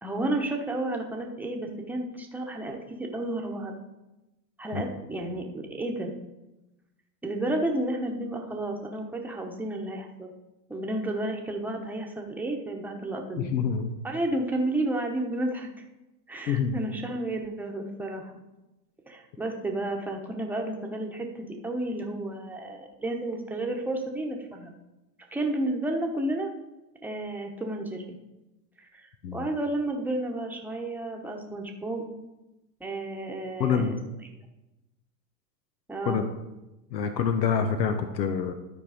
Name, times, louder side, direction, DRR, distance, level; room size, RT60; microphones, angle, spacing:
voice 1, 0.0-3.7 4.6-6.1 7.2-10.3 10.7-13.5 14.0-15.7 16.3-18.3 19.1-24.7 25.3-26.5 27.0-28.2 28.8-32.1 32.8-34.0 35.9-36.2, right 1 dB, 5° right, 1 dB, 1.0 m, -31 dB
voice 2, 13.4-13.9 16.5-16.8 29.2-29.4 33.6-33.9 36.1-36.2 36.9-38.5, left 7 dB, 90° left, 8 dB, 1.0 m, -26 dB
12.0 x 4.5 x 5.0 m, 1.0 s
hypercardioid pair, 125°, 49 cm